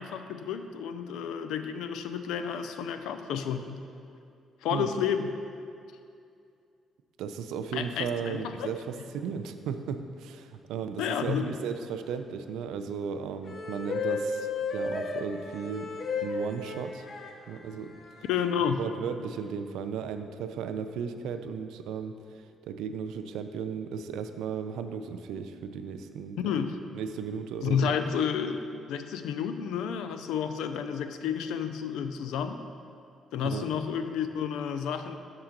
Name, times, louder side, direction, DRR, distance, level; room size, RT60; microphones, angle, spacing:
voice 1, 0.0-3.8 4.6-5.4 7.7-8.7 11.0-11.4 18.3-18.8 26.4-26.8 27.6-32.6 33.3-35.1, left 7 dB, 90° left, 9 dB, 0.4 m, -31 dB
voice 2, 7.2-15.9 16.2-17.1 17.5-17.9 18.8-22.1 22.7-26.4 26.9-27.9 33.4-33.7, right 7 dB, 90° right, 8 dB, 0.3 m, -35 dB
sound 1, 13.4-17.3 18.1-18.7, left 4 dB, 55° left, 0.7 m, -33 dB
6.5 x 3.8 x 5.9 m, 2.5 s
cardioid pair, 90°, 0 cm